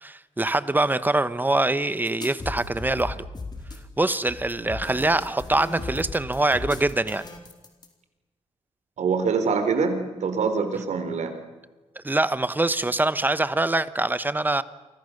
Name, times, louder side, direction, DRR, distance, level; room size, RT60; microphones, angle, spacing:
voice 1, 0.0-3.2 4.0-7.2 12.0-14.6, right 2 dB, 15° right, 1.1 m, -24 dB
sound 1, 2.0-7.9, left 3 dB, 40° left, 4.2 m, -37 dB
voice 2, 9.0-11.3, right 5 dB, 80° right, 4.0 m, -24 dB
30.0 x 24.5 x 6.7 m
wide cardioid pair, 110°, 12 cm